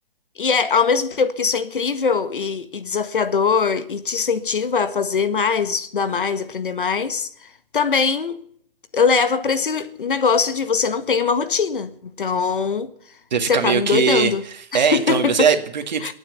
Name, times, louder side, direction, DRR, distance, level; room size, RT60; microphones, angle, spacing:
voice 1, 0.4-7.3 7.7-8.4 8.9-12.9 13.5-14.4 14.7-15.4 16.0-16.1, left 5 dB, 60° left, 1.7 m, -21 dB
voice 2, 13.3-16.1, right 6 dB, 50° right, 2.0 m, -20 dB
26.0 x 9.2 x 5.9 m
hypercardioid pair, 160°, 29 cm